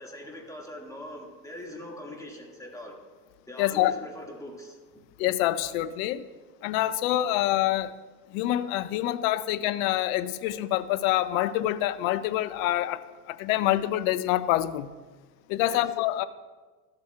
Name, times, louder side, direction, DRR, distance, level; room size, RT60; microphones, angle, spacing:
voice 1, 0.0-3.0 3.5-5.0 15.6-15.8, left 1 dB, 5° left, -1 dB, 2.1 m, -42 dB
voice 2, 3.6-3.9 5.2-6.2 6.6-7.9 8.3-14.9 15.5-16.2, left 14 dB, 60° left, 15 dB, 0.7 m, -26 dB
14.5 x 7.6 x 2.4 m, 1.3 s
hypercardioid pair, 90°, 47 cm